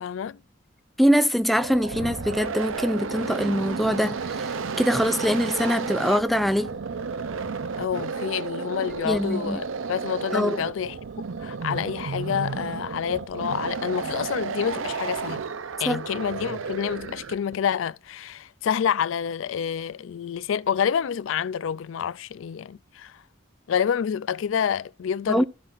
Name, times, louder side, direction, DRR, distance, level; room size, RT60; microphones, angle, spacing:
voice 1, 0.0-0.4 7.8-11.0 11.4-15.4 15.8-23.2 23.7-25.5, left 8 dB, 80° left, 0.4 m, -28 dB
voice 2, 1.0-6.7 9.0-9.6 10.3-10.6 15.9-16.0 25.3-25.5, equal, ahead, 0.4 m, -23 dB
sound 1, 1.4-17.5, right 5 dB, 85° right, 0.6 m, -32 dB
14.0 x 5.6 x 2.5 m
head